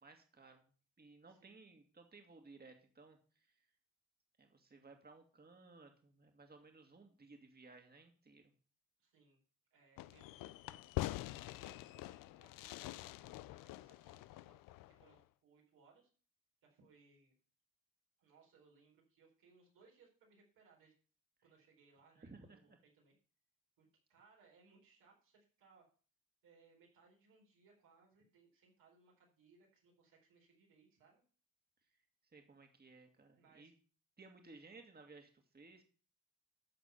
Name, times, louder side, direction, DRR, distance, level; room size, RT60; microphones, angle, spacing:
voice 1, 0.0-0.7 1.0-3.7 4.4-8.5 22.2-22.8 32.3-33.7 34.2-35.8, right 3 dB, 30° right, 4 dB, 2.0 m, -59 dB
voice 2, 1.3-1.7 9.0-9.4 9.7-10.9 11.6-14.5 14.9-16.1 16.6-17.3 18.2-20.9 21.4-23.2 23.8-25.9 26.4-31.2 33.3-33.7, right 4 dB, 90° right, -1 dB, 4.4 m, -69 dB
Fireworks, 10.0-15.2, left 17 dB, 90° left, 0.5 m, -45 dB
12.5 x 4.4 x 6.9 m, 0.40 s
supercardioid pair, 65°, 32 cm